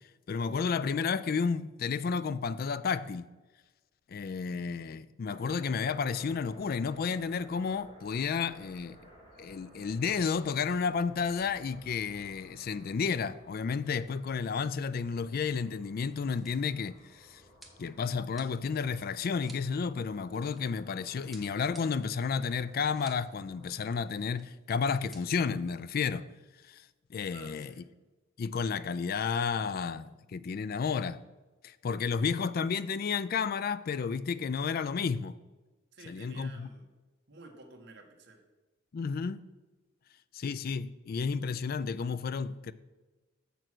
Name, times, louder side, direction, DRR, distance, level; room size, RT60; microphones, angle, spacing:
voice 1, 0.3-3.3 4.1-9.0 9.4-17.4 17.8-26.3 26.7-26.8 27.1-27.7 28.4-31.2 31.6-35.3 36.1-36.7 38.9-39.4 40.3-42.7, left 5 dB, 50° left, 0.4 m, -32 dB
sound 1, 5.3-23.7, equal, 25° left, 3.3 m, -57 dB
sound 2, 16.0-20.8 21.3-23.3 23.6-23.7 23.9-24.5 24.8-25.4, right 1 dB, ahead, 1.1 m, -56 dB
voice 2, 27.3-27.9 35.9-36.9 37.3-38.4, right 3 dB, 60° right, 1.5 m, -52 dB
7.4 x 6.8 x 6.1 m
head